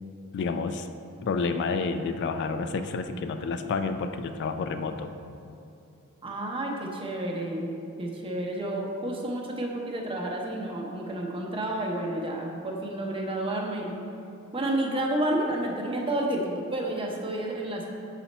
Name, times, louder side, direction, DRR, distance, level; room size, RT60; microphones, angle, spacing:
voice 1, 0.3-0.9 1.2-5.1, left 4 dB, 55° left, 8 dB, 0.3 m, -29 dB
voice 2, 6.2-7.7 8.0-13.9 14.5-17.9, right 1 dB, 25° right, 0 dB, 0.7 m, -30 dB
6.9 x 4.1 x 4.2 m, 2.6 s
head